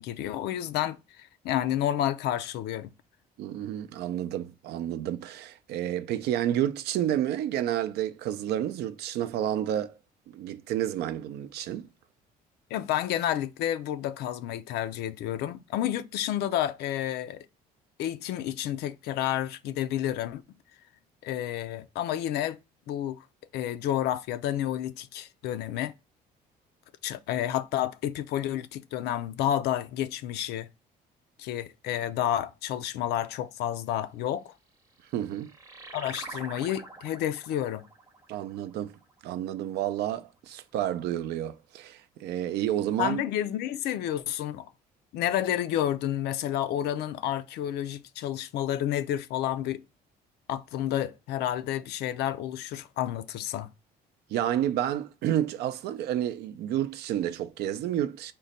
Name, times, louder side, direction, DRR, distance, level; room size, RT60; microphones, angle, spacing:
voice 1, 0.0-2.9 12.7-17.5 18.0-20.4 21.2-22.6 22.9-23.2 23.5-25.9 27.0-30.7 31.4-34.5 35.9-37.8 43.0-44.7 45.1-49.8 50.5-53.7, left 11 dB, 75° left, 0.4 m, -30 dB
voice 2, 3.4-9.9 10.3-11.9 35.1-35.5 38.3-38.9 39.2-43.2 54.3-58.3, right 11 dB, 75° right, 0.4 m, -30 dB
sound 1, 34.8-39.8, right 3 dB, 20° right, 0.8 m, -46 dB
3.8 x 2.2 x 3.9 m
cardioid pair, 110°, 17 cm